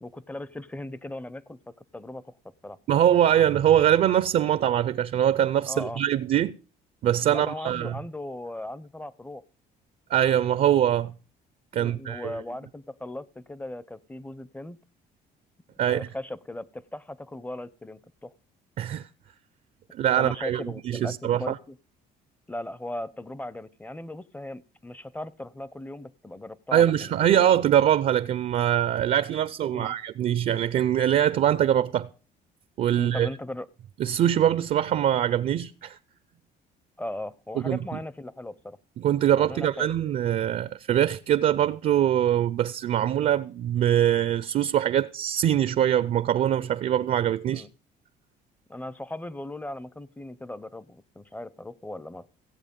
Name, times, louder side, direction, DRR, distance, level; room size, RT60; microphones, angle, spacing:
voice 1, 0.0-2.3 2.6-2.8 5.7-6.0 7.3-9.4 11.7-14.8 15.8-18.3 20.2-21.8 22.5-27.4 29.7-30.0 33.0-33.7 37.0-38.8 39.3-39.9 47.5-47.7 48.7-52.3, left 1 dB, 10° left, 0.6 m, -38 dB
voice 2, 2.9-6.6 7.0-8.0 10.1-11.1 11.7-12.4 15.8-16.1 18.8-19.1 19.9-21.6 26.7-32.1 32.8-33.3 34.0-36.0 37.6-37.8 39.0-47.7, right 10 dB, 55° right, 0.5 m, -23 dB
16.0 x 8.1 x 5.2 m
cardioid pair, 110°, 17 cm